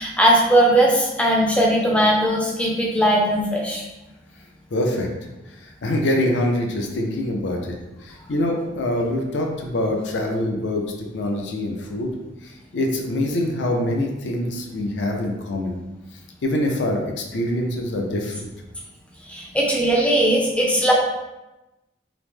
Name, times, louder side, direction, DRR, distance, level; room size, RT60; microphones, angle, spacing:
voice 1, 0.0-3.8 19.3-20.9, right 1 dB, 5° left, -2 dB, 0.4 m, -19 dB
voice 2, 4.7-5.1 5.6-7.7 8.0-10.8 11.1-12.1 12.4-15.8 16.4-18.5, left 1 dB, 70° left, 1 dB, 0.5 m, -24 dB
2.9 x 2.0 x 3.3 m, 1.0 s
head